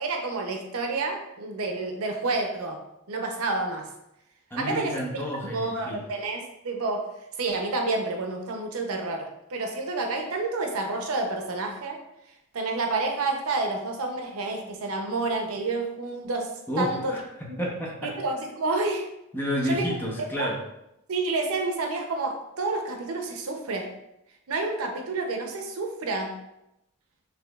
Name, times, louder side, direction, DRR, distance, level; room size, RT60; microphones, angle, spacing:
voice 1, 0.0-2.8 3.1-3.9 4.6-5.2 5.5-7.1 7.4-12.0 12.5-16.5 16.8-17.2 17.5-17.7 18.0-19.1 19.6-19.8 20.4-20.5 21.1-23.9 24.5-26.4, right 3 dB, 85° right, 3 dB, 0.6 m, -29 dB
voice 2, 4.5-6.0 16.7-18.1 19.3-20.6, equal, 10° left, -3 dB, 0.7 m, -30 dB
4.9 x 3.1 x 2.3 m, 0.86 s
head